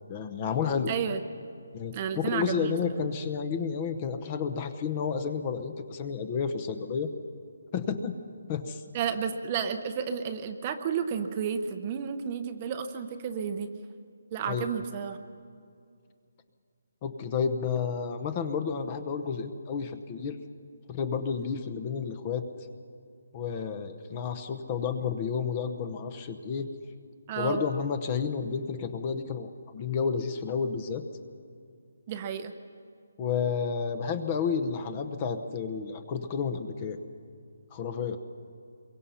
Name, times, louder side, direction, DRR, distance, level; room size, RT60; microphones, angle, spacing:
voice 1, 0.1-0.9 1.7-7.1 7.7-8.2 8.5-8.8 14.5-14.7 17.0-20.4 20.9-22.4 23.3-26.7 27.4-31.0 33.2-37.0 37.7-38.2, left 6 dB, 20° left, 9 dB, 0.8 m, -31 dB
voice 2, 0.9-1.2 1.9-2.7 8.9-13.7 14.3-15.2 27.3-27.6 32.1-32.5, right 7 dB, 20° right, 8 dB, 0.8 m, -31 dB
27.5 x 23.0 x 5.7 m, 2.3 s
hypercardioid pair, 175°, 0 cm